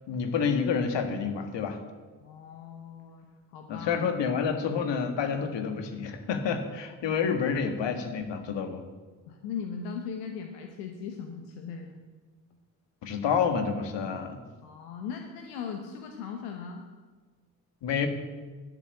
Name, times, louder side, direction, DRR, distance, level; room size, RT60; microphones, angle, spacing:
voice 1, 0.1-1.8 3.7-8.8 13.0-14.4 17.8-18.1, left 6 dB, 65° left, 7 dB, 1.8 m, -29 dB
voice 2, 2.2-3.3 3.5-4.0 9.3-11.9 14.6-16.8, left 6 dB, 90° left, 4 dB, 1.0 m, -38 dB
11.0 x 8.0 x 8.3 m, 1.4 s
hypercardioid pair, 45°, 46 cm